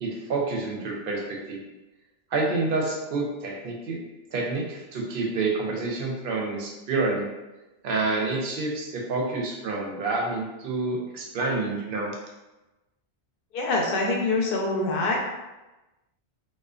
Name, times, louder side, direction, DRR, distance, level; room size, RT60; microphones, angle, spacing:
voice 1, 0.0-1.6 2.3-4.0 4.3-7.3 7.8-12.1, right 3 dB, 65° right, -1 dB, 0.7 m, -28 dB
voice 2, 13.5-15.2, left 2 dB, 65° left, -1 dB, 0.7 m, -25 dB
2.4 x 2.2 x 2.4 m, 1.1 s
omnidirectional pair, 1.1 m